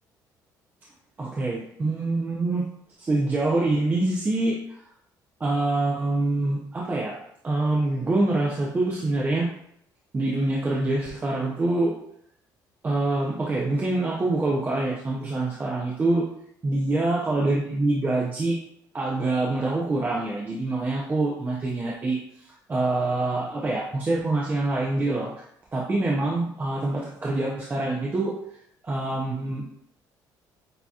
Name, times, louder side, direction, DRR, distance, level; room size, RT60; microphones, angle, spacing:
voice 1, 1.2-2.6 3.0-4.6 5.4-7.1 7.4-9.5 10.1-11.9 12.8-16.3 16.6-18.6 18.9-22.2 22.7-25.3 25.7-28.3 28.8-29.7, right 2 dB, 25° right, -4 dB, 0.6 m, -25 dB
6.6 x 2.8 x 2.3 m, 0.71 s
cardioid pair, 125°, 8 cm